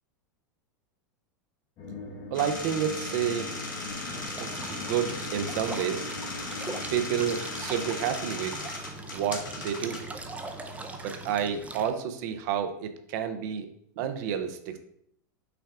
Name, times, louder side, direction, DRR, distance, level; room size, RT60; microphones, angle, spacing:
sound 1, 1.8-9.3, left 4 dB, 40° left, 1.1 m, -42 dB
voice 1, 1.9-3.5 4.4-6.1 6.9-8.6 9.1-10.0 11.0-13.7 14.0-14.8, right 8 dB, 60° right, 8 dB, 0.6 m, -30 dB
sound 2, 2.3-11.3, left 2 dB, 85° left, 1.2 m, -38 dB
sound 3, 4.1-11.9, right 3 dB, 15° right, 0.5 m, -42 dB
5.7 x 2.3 x 3.6 m, 0.70 s
hypercardioid pair, 95°, 11 cm